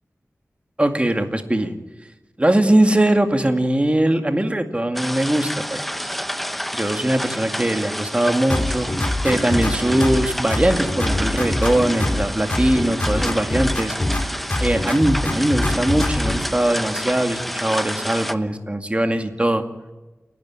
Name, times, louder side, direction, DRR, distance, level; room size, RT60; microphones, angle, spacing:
voice 1, 0.8-1.7 2.4-5.8 6.1-6.2 6.7-8.9 9.2-13.9 14.6-19.6, right 1 dB, 20° right, 6 dB, 2.2 m, -20 dB
sound 1, 5.0-18.3, equal, ahead, 1.0 m, -29 dB
sound 2, 8.5-10.2 10.5-12.2 12.5-14.2 14.5-16.4, left 1 dB, 30° left, 3.4 m, -23 dB
sound 3, 9.2-17.8, right 3 dB, 65° right, 1.7 m, -39 dB
29.0 x 12.0 x 8.9 m, 1.1 s
wide cardioid pair, 60°, 5 cm